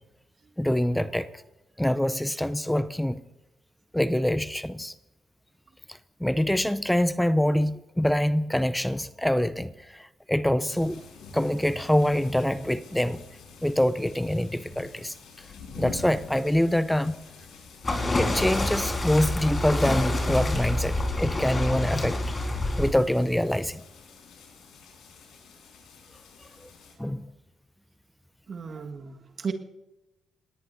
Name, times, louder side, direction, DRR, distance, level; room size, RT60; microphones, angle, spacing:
voice 1, 0.6-1.3 1.8-3.2 3.9-4.9 5.9-11.0 11.3-13.2 13.6-15.5 15.8-17.2 18.1-22.2 22.8-23.8 27.0-27.3, left 1 dB, 5° left, 15 dB, 0.7 m, -25 dB
sound 1, 10.7-26.9, left 4 dB, 70° left, 5.1 m, -47 dB
sound 2, 17.8-22.9, left 1 dB, 30° left, 4.7 m, -27 dB
voice 2, 28.5-29.5, right 5 dB, 50° right, 5 dB, 1.8 m, -35 dB
27.0 x 19.5 x 2.8 m, 0.95 s
hypercardioid pair, 40°, 0 cm